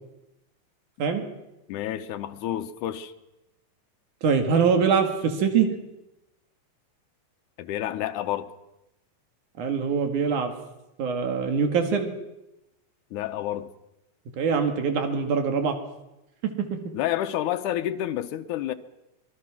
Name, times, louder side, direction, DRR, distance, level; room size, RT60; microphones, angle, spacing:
voice 1, 1.7-3.1 7.6-8.5 13.1-13.7 16.9-18.7, left 12 dB, 90° left, 2.4 m, -29 dB
voice 2, 4.2-5.7 9.6-10.5 11.0-12.1 14.4-15.8 16.4-16.8, right 6 dB, 85° right, 3.6 m, -23 dB
25.0 x 20.5 x 6.0 m
omnidirectional pair, 3.4 m